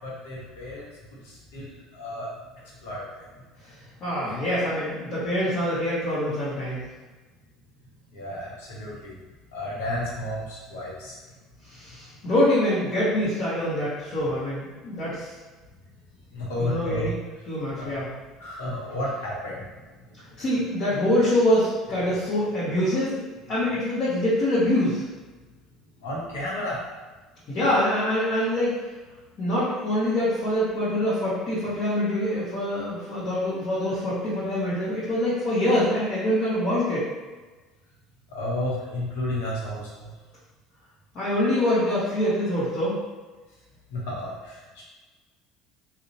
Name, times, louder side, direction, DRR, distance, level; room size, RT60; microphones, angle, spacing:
voice 1, 0.0-2.3 2.8-3.3 8.1-9.2 9.5-11.1 16.3-17.1 17.8-18.0 18.4-19.7 20.3-20.4 26.0-26.8 38.3-40.1 43.9-44.8, left 1 dB, 85° left, -5 dB, 0.8 m, -32 dB
voice 2, 4.0-6.8 11.7-15.3 16.6-17.2 17.4-18.1 20.4-23.1 23.5-25.1 27.5-28.8 29.4-37.1 41.1-43.0, left 1 dB, 50° left, -10 dB, 0.9 m, -25 dB
2.7 x 2.1 x 2.6 m, 1.3 s
hypercardioid pair, 80°, 0 cm